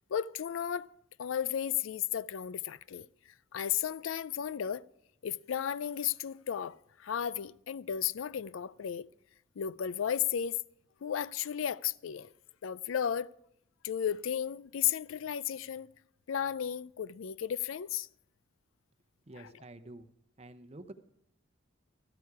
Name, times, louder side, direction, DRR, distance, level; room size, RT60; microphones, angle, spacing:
voice 1, 0.1-0.9 1.2-3.1 3.5-4.8 5.2-9.1 9.6-10.6 11.0-12.3 12.6-13.3 13.8-15.9 16.3-18.1, left 9 dB, 90° left, 0.4 m, -34 dB
voice 2, 19.3-20.1 20.4-20.9, right 2 dB, 30° right, 0.7 m, -48 dB
13.5 x 13.0 x 4.8 m
head